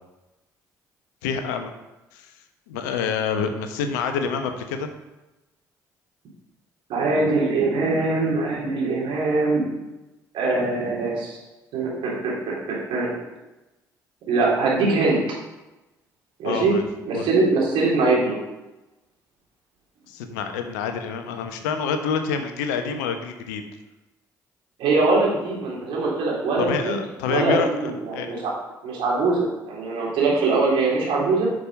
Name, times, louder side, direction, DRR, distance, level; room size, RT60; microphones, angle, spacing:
voice 1, 1.2-1.7 2.1-2.4 2.7-4.9 16.4-16.8 17.1-17.3 20.1-23.6 26.6-28.3, left 6 dB, 75° left, 7 dB, 0.9 m, -27 dB
voice 2, 6.9-9.6 10.3-11.4 11.7-13.1 14.3-15.2 16.4-16.7 17.1-18.4 24.8-27.0 27.3-28.5 28.8-31.5, right 3 dB, 65° right, -4 dB, 3.4 m, -22 dB
9.9 x 6.2 x 5.2 m, 1.0 s
figure-of-eight pair, 45°, 10 cm